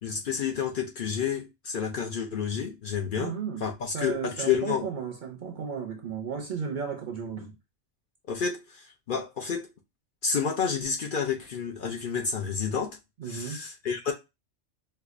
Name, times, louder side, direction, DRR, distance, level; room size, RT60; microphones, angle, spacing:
voice 1, 0.0-3.3 3.6-4.9 8.3-9.7 10.2-13.0 13.2-14.1, left 6 dB, 55° left, 0.6 m, -30 dB
voice 2, 3.2-3.7 3.9-7.6 13.2-13.6, right 6 dB, 55° right, 0.6 m, -34 dB
4.6 x 2.2 x 2.4 m
omnidirectional pair, 1.2 m